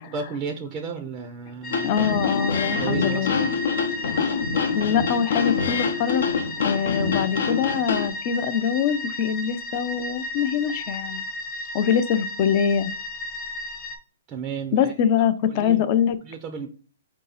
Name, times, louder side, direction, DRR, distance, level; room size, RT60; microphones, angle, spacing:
voice 1, 0.0-2.0 2.3-3.6 14.3-14.9 15.2-15.8 16.2-16.7, right 6 dB, 20° right, 4 dB, 0.5 m, -34 dB
sound 1, 1.6-14.0, left 1 dB, 20° left, 0.8 m, -34 dB
sound 2, 1.7-8.1, left 5 dB, 80° left, 0.7 m, -25 dB
voice 2, 1.8-3.4 4.7-6.3 6.6-11.3 11.7-12.9 14.7-16.2, left 8 dB, 35° left, 12 dB, 0.4 m, -23 dB
4.7 x 2.7 x 3.9 m, 0.39 s
hypercardioid pair, 160°, 0 cm